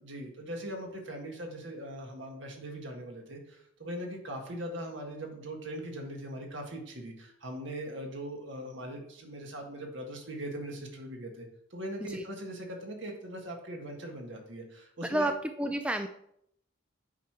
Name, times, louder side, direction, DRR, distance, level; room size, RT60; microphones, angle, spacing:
voice 1, 0.0-15.3, equal, 60° right, 2 dB, 1.8 m, -40 dB
voice 2, 15.0-16.1, right 1 dB, 5° right, 7 dB, 0.3 m, -30 dB
8.3 x 5.0 x 5.9 m, 0.75 s
head